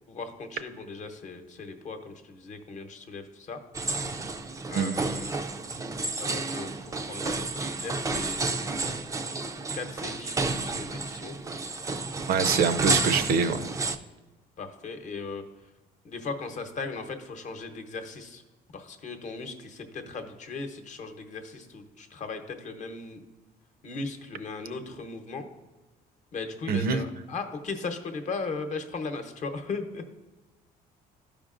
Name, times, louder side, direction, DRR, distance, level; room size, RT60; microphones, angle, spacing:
voice 1, 0.1-3.6 4.7-5.5 6.2-8.5 9.7-11.4 14.6-15.4 16.0-18.4 18.7-23.2 23.8-25.5 26.3-30.0, left 4 dB, 45° left, 7 dB, 0.9 m, -37 dB
sound 1, 3.7-14.0, right 3 dB, 20° right, 0.4 m, -31 dB
voice 2, 12.3-13.6 26.7-27.0, right 5 dB, 65° right, 11 dB, 0.6 m, -24 dB
12.5 x 5.1 x 2.5 m, 1.2 s
cardioid pair, 110°, 17 cm